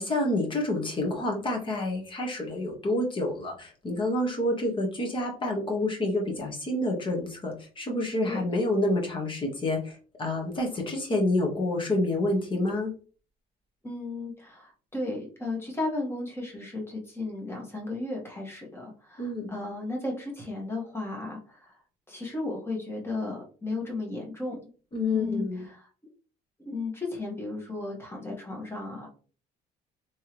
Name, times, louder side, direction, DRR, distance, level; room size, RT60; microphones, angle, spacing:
voice 1, 0.0-12.9 19.2-19.5 24.9-25.7, left 1 dB, 30° left, 1 dB, 1.4 m, -28 dB
voice 2, 13.8-21.7 22.1-24.6 25.1-25.9 26.6-29.1, left 2 dB, 15° left, -1 dB, 1.6 m, -34 dB
3.4 x 3.2 x 3.0 m, 0.38 s
cardioid pair, 110°, 17 cm